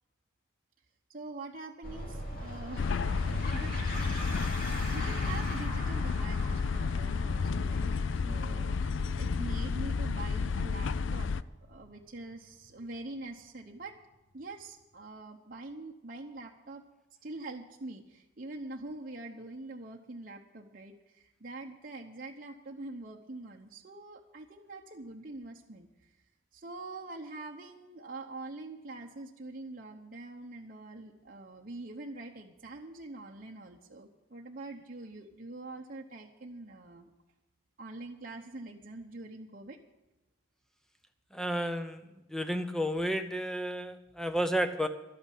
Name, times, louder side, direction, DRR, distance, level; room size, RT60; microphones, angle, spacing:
voice 1, 1.1-3.8 4.2-8.0 8.2-11.3 11.6-13.9 14.3-16.8 17.2-26.1 26.5-37.1 37.8-39.8, right 2 dB, 45° right, 0 dB, 0.9 m, -44 dB
sound 1, 1.8-12.9, left 1 dB, 45° left, 2.8 m, -41 dB
sound 2, 2.8-11.4, left 5 dB, 75° left, 0.4 m, -31 dB
voice 2, 41.3-42.0 42.3-44.9, equal, ahead, 8 dB, 0.7 m, -31 dB
12.0 x 8.7 x 8.3 m, 0.99 s
head